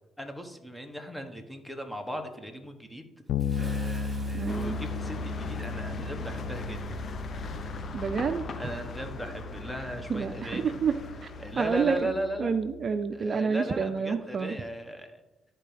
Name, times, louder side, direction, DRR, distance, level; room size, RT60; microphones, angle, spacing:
voice 1, 0.2-3.1 3.6-7.0 8.6-10.8 11.4-12.6 13.1-15.2, right 1 dB, 5° left, 5 dB, 1.4 m, -37 dB
Bass guitar, 3.3-12.9, left 4 dB, 75° left, 0.4 m, -36 dB
Bathtub (filling or washing) / Splash splatter, 3.4-5.9, right 2 dB, 25° right, 2.9 m, -50 dB
voice 2, 4.3-4.8 7.9-8.4 10.1-11.0 11.2-11.3 11.6-12.1 12.4-14.5, right 5 dB, 50° right, 10 dB, 0.5 m, -28 dB
sound 1, 4.5-12.0, left 4 dB, 55° left, 0.9 m, -40 dB
13.0 x 4.6 x 3.4 m, 1.0 s
supercardioid pair, 65°, 0 cm